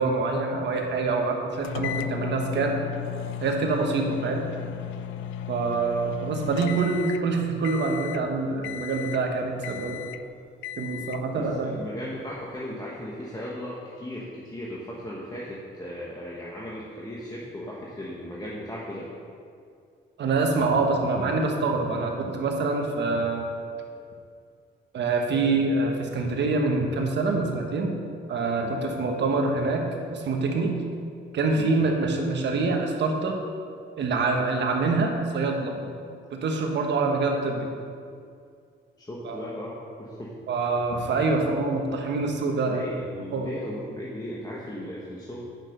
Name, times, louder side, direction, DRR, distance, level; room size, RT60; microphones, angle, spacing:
voice 1, 0.0-2.8 3.4-4.5 5.5-10.0 10.8-11.8 20.2-23.5 24.9-27.9 28.3-30.8 31.3-33.4 34.0-35.7 36.3-37.7 39.2-39.4 40.5-42.9 43.3-43.5, right 3 dB, 65° right, 2 dB, 1.4 m, -25 dB
sound 1, 1.6-7.3 7.6-8.2 8.6-9.3 9.6-10.2 10.6-11.3, left 10 dB, 85° left, 0.4 m, -35 dB
voice 2, 11.3-19.1 28.6-28.8 31.5-31.8 39.0-40.3 42.7-45.4, equal, 20° left, -5 dB, 1.3 m, -37 dB
8.9 x 6.0 x 5.3 m, 2.3 s
cardioid pair, 90°, 20 cm